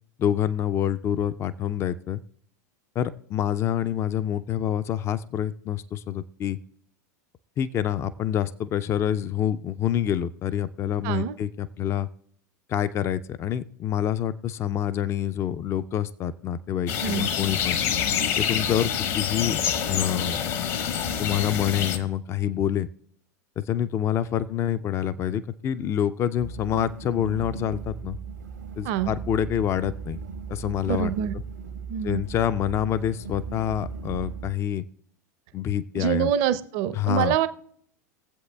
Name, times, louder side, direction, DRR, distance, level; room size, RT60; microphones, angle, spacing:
voice 1, 0.2-2.2 3.0-6.6 7.6-12.1 12.7-17.8 18.4-19.6 19.9-20.5 21.2-22.9 23.6-28.2 28.8-30.2 30.5-31.1 32.0-34.8 35.5-36.3 36.9-37.4, left 10 dB, 30° left, 14 dB, 0.4 m, -27 dB
voice 2, 11.0-11.4 17.0-17.3 28.8-29.1 30.9-31.3 31.9-32.2 35.9-37.5, right 10 dB, 50° right, 12 dB, 0.6 m, -25 dB
sound 1, 16.9-22.0, left 8 dB, 50° left, 1.0 m, -26 dB
sound 2, 26.4-34.5, right 6 dB, 80° right, 1.2 m, -37 dB
22.0 x 7.8 x 2.3 m, 0.64 s
figure-of-eight pair, 90°, 10 cm